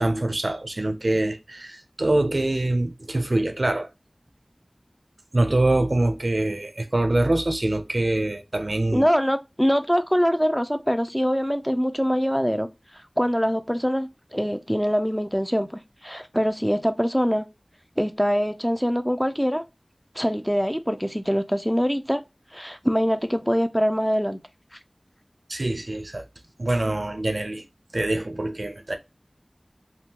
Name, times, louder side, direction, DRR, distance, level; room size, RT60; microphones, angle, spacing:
voice 1, 0.0-3.9 5.3-9.1 25.5-26.3 26.6-27.6 27.9-29.0, right 2 dB, 65° right, 0.5 m, -24 dB
voice 2, 8.9-12.7 13.2-15.7 16.0-17.5 18.0-19.6 20.2-22.2 22.5-24.4, equal, 5° left, 0.4 m, -23 dB
3.5 x 2.2 x 2.8 m
wide cardioid pair, 40°, 0 cm